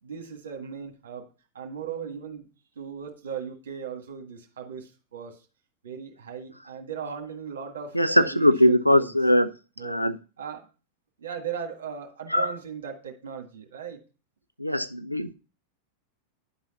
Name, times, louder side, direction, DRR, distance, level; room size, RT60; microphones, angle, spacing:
voice 1, 0.0-1.3 1.5-2.5 2.7-5.4 5.8-9.2 9.8-10.1 10.4-10.7 11.2-14.0, right 7 dB, 65° right, 3 dB, 1.6 m, -38 dB
voice 2, 7.9-9.5 9.8-10.2 12.3-12.5 14.6-15.3, equal, 90° left, 12 dB, 0.5 m, -21 dB
10.5 x 4.0 x 4.4 m, 0.33 s
figure-of-eight pair, 90°, 0 cm